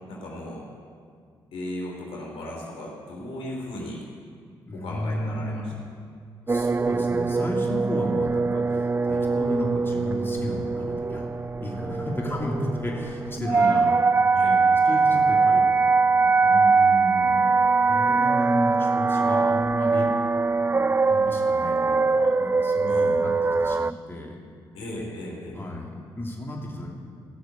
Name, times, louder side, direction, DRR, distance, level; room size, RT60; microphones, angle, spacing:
voice 1, 0.1-0.7 1.3-4.1 4.7-5.7 13.4-13.8 14.3-14.5 22.8-23.1 24.7-25.6, left 1 dB, 75° left, -2 dB, 3.3 m, -36 dB
voice 2, 4.7-5.7 6.4-11.3 11.6-14.0 14.4-17.4 17.9-20.1 20.7-23.3 23.6-24.4 25.5-26.9, left 1 dB, 25° left, -2 dB, 2.6 m, -33 dB
sound 1, 6.5-23.9, right 4 dB, 25° right, 0.4 m, -22 dB
16.0 x 6.5 x 8.2 m, 2.1 s
supercardioid pair, 50°, 10 cm